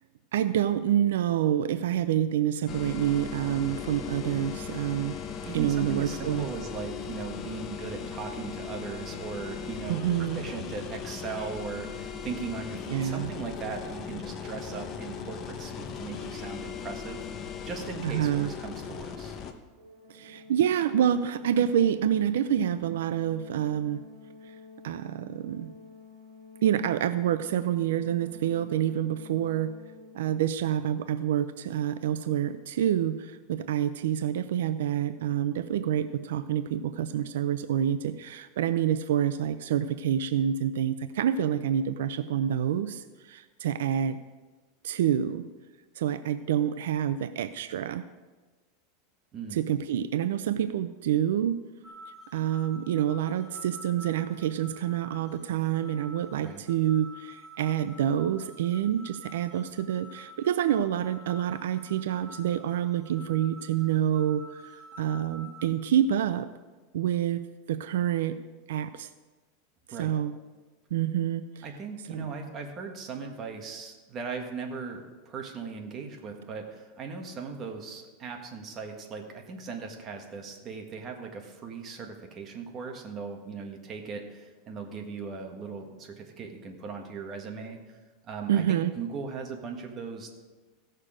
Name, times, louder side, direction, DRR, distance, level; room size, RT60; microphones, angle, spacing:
voice 1, 0.3-5.2 5.5-6.5 9.9-10.4 12.9-13.3 18.0-18.5 20.1-24.0 24.5-24.6 24.8-25.7 26.6-29.7 30.1-44.2 44.8-45.4 46.0-48.0 49.5-51.6 52.3-66.5 66.9-67.4 67.7-68.4 68.7-69.1 70.0-70.3 70.9-71.6 72.1-72.3 88.5-88.9, right 10 dB, 85° right, 12 dB, 0.4 m, -27 dB
sound 1, 2.7-19.5, left 6 dB, 30° left, 0.9 m, -38 dB
voice 2, 5.4-17.2 17.6-19.4 49.3-49.6 56.4-56.6 69.9-70.1 71.6-88.0 88.2-90.4, right 5 dB, 30° right, 3 dB, 1.5 m, -38 dB
Organ, 19.8-30.6, left 5 dB, 55° right, 3.8 m, -50 dB
sound 2, 51.8-65.7, equal, 5° right, 2.3 m, -49 dB
16.0 x 6.6 x 5.0 m, 1.3 s
supercardioid pair, 150°, 0 cm